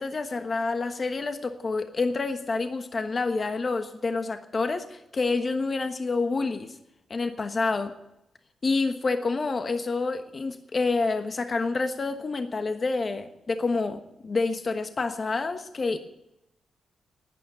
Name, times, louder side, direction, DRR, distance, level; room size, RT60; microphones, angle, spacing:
voice 1, 0.0-6.7 7.1-7.9 8.6-16.0, left 3 dB, 35° left, 7 dB, 1.3 m, -28 dB
12.0 x 9.5 x 9.1 m, 0.84 s
cardioid pair, 95°, 0 cm